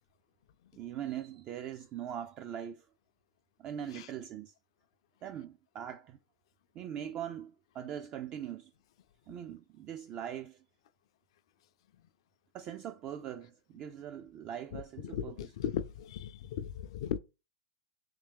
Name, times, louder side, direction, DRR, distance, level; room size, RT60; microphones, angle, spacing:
voice 1, 0.7-2.9 3.6-4.5 5.2-6.2 6.7-8.7 9.3-10.6 12.5-15.5, right 10 dB, 35° right, 0.3 m, -41 dB
voice 2, 15.0-17.2, left 9 dB, 70° left, 0.4 m, -37 dB
3.2 x 3.0 x 3.4 m
hypercardioid pair, 120°, 3 cm